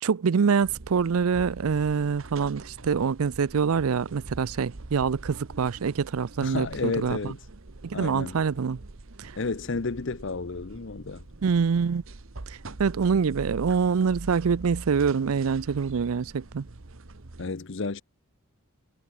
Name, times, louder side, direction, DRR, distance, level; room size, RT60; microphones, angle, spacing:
voice 1, 0.0-7.3 7.8-8.8 9.2-9.4 11.4-12.0 12.5-16.7, right 6 dB, 85° right, 0.5 m, -25 dB
sound 1, 0.6-17.5, right 2 dB, 65° right, 1.2 m, -44 dB
voice 2, 6.4-7.4 7.9-8.4 9.4-11.2 17.4-18.0, left 3 dB, 55° left, 0.8 m, -31 dB
head